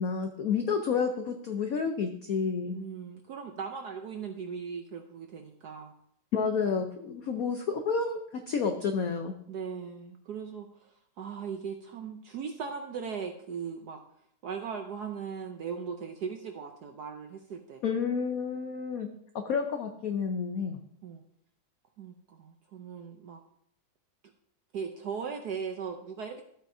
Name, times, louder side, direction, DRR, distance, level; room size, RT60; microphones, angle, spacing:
voice 1, 0.0-2.8 6.3-9.4 17.8-19.1 19.4-20.8, left 5 dB, 80° left, 5 dB, 0.8 m, -30 dB
voice 2, 2.7-5.9 9.5-10.9 11.2-14.0 14.4-17.8 21.0-21.2 22.0-23.4 24.7-26.4, right 6 dB, 70° right, 5 dB, 0.9 m, -38 dB
12.5 x 8.2 x 2.7 m, 0.71 s
omnidirectional pair, 2.4 m